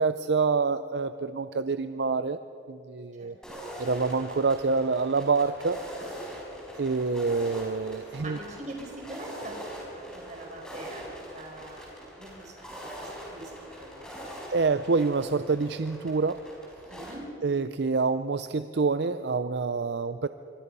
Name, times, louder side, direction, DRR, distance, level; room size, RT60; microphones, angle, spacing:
voice 1, 0.0-2.4 2.7-3.4 3.8-5.8 6.8-8.4 14.5-16.4 17.4-20.3, right 4 dB, 65° right, 12 dB, 0.5 m, -27 dB
sound 1, 3.4-17.2, equal, 5° left, 4.5 m, -43 dB
voice 2, 8.2-11.9 12.2-14.4 16.9-17.3, right 1 dB, 40° right, 1 dB, 4.6 m, -43 dB
25.0 x 24.5 x 5.5 m, 2.8 s
head